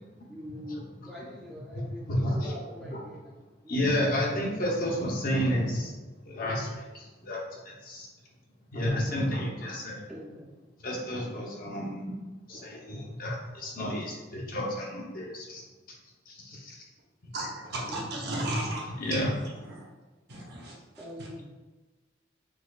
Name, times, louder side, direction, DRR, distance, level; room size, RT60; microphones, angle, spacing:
voice 1, 0.3-4.4 10.1-10.7 17.9-18.4 21.0-21.5, left 1 dB, ahead, -7 dB, 0.4 m, -44 dB
voice 2, 2.1-2.5 2.9-3.0 3.7-5.9 6.3-8.1 8.7-10.0 10.8-12.1 12.5-15.6 16.3-16.8 17.7-17.8 18.4-18.5 19.0-19.3, equal, 45° left, -2 dB, 0.7 m, -31 dB
voice 3, 17.3-19.2 19.7-19.8 20.3-21.0, right 2 dB, 55° right, -3 dB, 0.8 m, -36 dB
4.7 x 2.2 x 2.3 m, 1.2 s
head